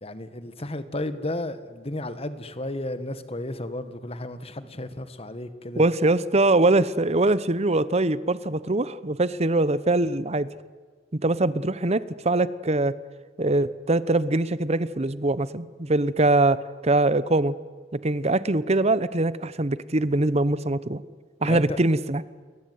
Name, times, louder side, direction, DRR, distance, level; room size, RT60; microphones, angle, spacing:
voice 1, 0.0-5.9 21.4-21.8, left 1 dB, 35° left, 12 dB, 1.7 m, -33 dB
voice 2, 5.8-10.5 11.1-12.9 13.4-17.5 17.9-21.0 21.4-22.2, right 2 dB, 35° right, 17 dB, 1.0 m, -23 dB
29.0 x 21.5 x 9.5 m, 1.5 s
head